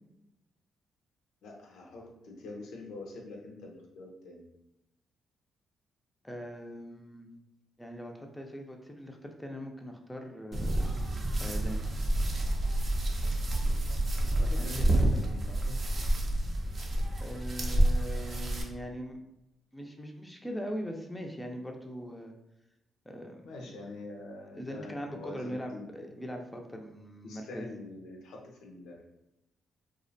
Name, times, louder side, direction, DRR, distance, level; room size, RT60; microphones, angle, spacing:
voice 1, 1.4-4.5 14.3-15.8 23.4-25.8 27.2-29.0, left 2 dB, 80° left, 0 dB, 0.5 m, -45 dB
voice 2, 6.2-7.3 7.8-11.8 14.6-14.9 17.2-19.2 19.7-22.3 23.1-23.7 24.5-27.6, equal, 10° left, 2 dB, 0.4 m, -41 dB
sound 1, 10.5-18.6, right 1 dB, 50° right, 0.5 m, -28 dB
2.4 x 2.0 x 2.6 m, 0.89 s
supercardioid pair, 55°, 0 cm